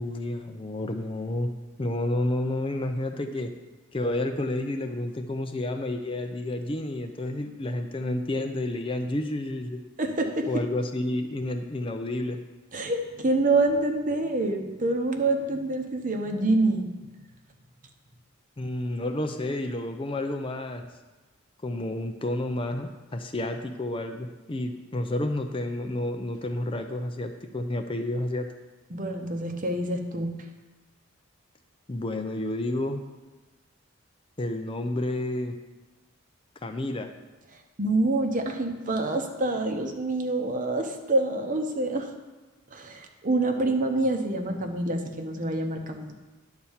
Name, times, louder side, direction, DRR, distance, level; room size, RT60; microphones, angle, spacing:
voice 1, 0.0-1.5 1.8-3.5 3.9-9.8 10.5-12.4 18.6-20.9 21.6-28.5 31.9-33.0 34.4-35.6 36.6-37.1, left 1 dB, 25° left, 6 dB, 0.5 m, -30 dB
voice 2, 10.0-10.6 12.7-16.9 28.9-30.3 37.8-42.1 42.7-46.1, right 2 dB, 40° right, 5 dB, 0.9 m, -26 dB
10.5 x 4.2 x 7.2 m, 1.2 s
head